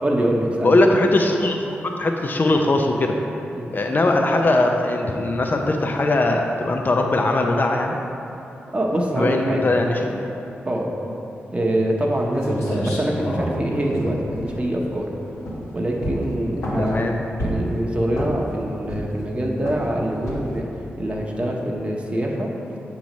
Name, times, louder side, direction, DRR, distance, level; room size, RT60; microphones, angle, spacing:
voice 1, 0.0-0.7 3.5-3.7 8.7-9.6 10.7-10.9 11.5-15.1 15.7-17.1 17.4-20.7 21.0-22.5, right 1 dB, 25° right, -2 dB, 0.8 m, -24 dB
voice 2, 0.6-1.7 2.0-3.1 3.7-8.0 9.2-10.2 16.8-17.1, left 2 dB, 40° left, 2 dB, 0.5 m, -20 dB
sound 1, 12.1-12.2 12.4-15.0 15.4-15.7 16.0-17.0 17.4-17.8 18.1-18.5 18.9-19.3 19.7-19.9 20.3-20.6, equal, 85° left, 1.4 m, -28 dB
7.0 x 3.0 x 5.2 m, 2.9 s
supercardioid pair, 45°, 5 cm